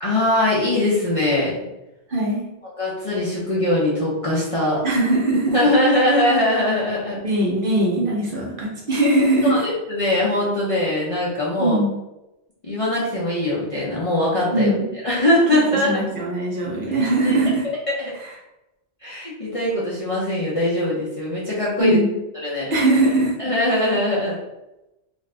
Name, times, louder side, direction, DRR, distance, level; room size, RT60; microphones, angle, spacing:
voice 1, 0.0-1.6 2.8-4.8 5.5-7.2 9.4-11.8 12.6-14.7 15.0-16.0 17.2-17.4 17.6-18.1 19.0-22.0 22.4-22.7 23.4-24.4, left 1 dB, 40° left, -8 dB, 0.5 m, -21 dB
voice 2, 2.1-2.4 4.8-5.6 7.2-9.6 11.6-11.9 14.5-14.9 15.7-17.6 21.8-22.1 22.7-23.3, right 2 dB, 55° right, -4 dB, 0.8 m, -20 dB
2.5 x 2.4 x 3.2 m, 0.95 s
omnidirectional pair, 1.2 m